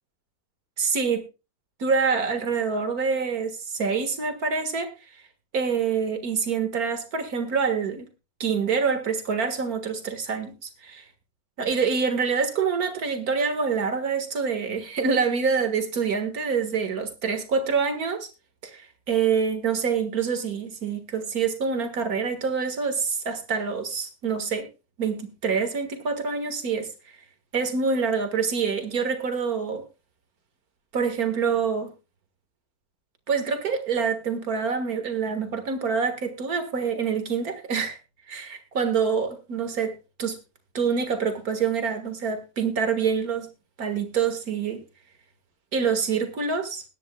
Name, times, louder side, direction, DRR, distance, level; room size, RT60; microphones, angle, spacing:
voice 1, 0.8-1.2 1.8-4.9 5.5-8.1 8.4-11.0 11.6-18.3 18.7-24.7 25.0-26.9 27.5-29.8 30.9-31.9 33.3-38.0 38.3-40.4 40.7-43.5 43.8-44.8 45.7-46.8, right 5 dB, 85° right, 8 dB, 2.1 m, -26 dB
21.0 x 10.0 x 2.2 m, 0.28 s
omnidirectional pair, 1.5 m